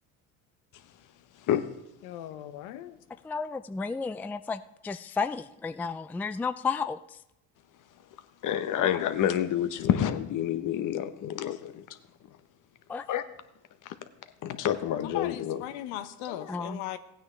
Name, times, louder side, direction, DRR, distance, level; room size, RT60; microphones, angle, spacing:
voice 1, 2.0-3.0 15.0-17.0, left 12 dB, 80° left, 10 dB, 0.8 m, -38 dB
voice 2, 3.2-7.0 12.9-13.1 16.5-16.8, left 5 dB, 5° left, 11 dB, 0.3 m, -32 dB
voice 3, 8.4-11.8 13.1-13.2 13.8-13.9 14.4-15.6 16.2-16.7, left 10 dB, 55° left, 10 dB, 1.0 m, -28 dB
16.0 x 9.2 x 3.3 m, 0.83 s
supercardioid pair, 80°, 37 cm